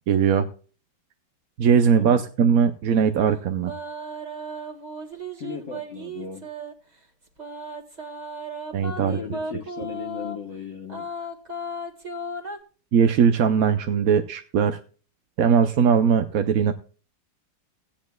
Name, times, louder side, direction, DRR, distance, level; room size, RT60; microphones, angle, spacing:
voice 1, 0.1-0.5 1.6-3.7 8.7-9.2 12.9-14.8 15.4-16.7, right 7 dB, 60° right, 7 dB, 1.0 m, -20 dB
sound 1, 3.6-6.7 7.4-10.4 10.9-12.6, right 1 dB, 25° right, 1.6 m, -35 dB
voice 2, 5.4-6.4 9.0-11.1, left 6 dB, 45° left, 4 dB, 1.1 m, -36 dB
16.5 x 10.0 x 2.3 m, 0.38 s
omnidirectional pair, 1.9 m